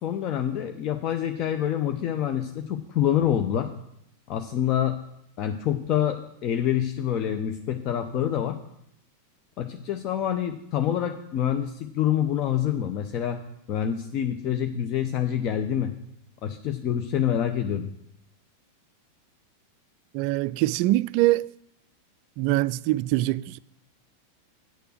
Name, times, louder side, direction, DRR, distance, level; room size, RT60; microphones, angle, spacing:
voice 1, 0.0-3.7 4.3-5.0 5.4-8.6 9.6-13.4 13.7-15.9 16.4-17.9, left 10 dB, 40° left, 0.7 m, -26 dB
voice 2, 20.1-21.5 22.4-23.6, right 17 dB, 45° right, 0.3 m, -23 dB
9.3 x 6.8 x 6.4 m
figure-of-eight pair, 90°, 0 cm